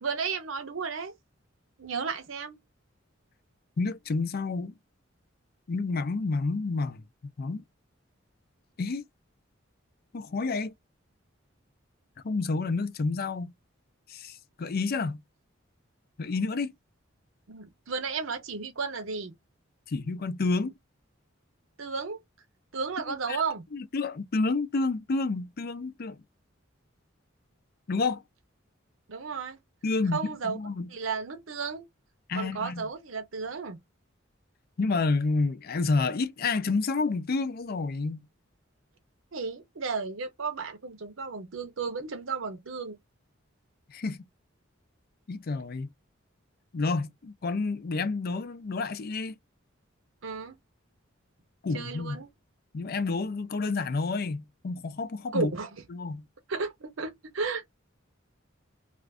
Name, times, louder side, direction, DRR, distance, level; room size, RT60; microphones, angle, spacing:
voice 1, 0.0-1.1 1.8-2.6 17.5-19.3 21.8-22.2 22.7-23.6 29.1-29.6 30.1-30.6 30.9-31.8 32.4-33.8 39.3-43.0 50.2-50.5 51.7-52.3 55.3-55.7 56.5-57.7, right 5 dB, 80° right, 0.7 m, -33 dB
voice 2, 3.8-4.8 5.7-7.0 7.4-7.6 8.8-9.0 10.1-10.7 12.2-13.5 14.1-15.2 16.2-16.7 19.9-20.7 23.1-23.4 23.7-26.2 27.9-28.2 29.8-30.9 32.3-32.9 34.8-38.3 43.9-44.2 45.3-45.9 46.7-49.3 51.6-52.2 52.7-55.5 55.9-56.2, left 3 dB, 50° left, 0.5 m, -29 dB
2.5 x 2.4 x 3.4 m
head